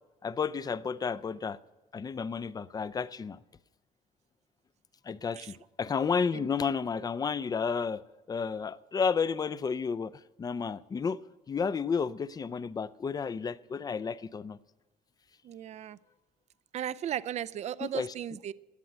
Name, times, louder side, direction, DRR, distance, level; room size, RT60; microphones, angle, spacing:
voice 1, 0.2-1.6 1.9-3.4 5.1-10.1 10.4-14.6 17.8-18.1, left 5 dB, 25° left, 0.4 m, -32 dB
voice 2, 15.4-16.0 16.7-18.5, right 10 dB, 40° right, 0.4 m, -36 dB
11.5 x 7.7 x 9.6 m
cardioid pair, 110°, 17 cm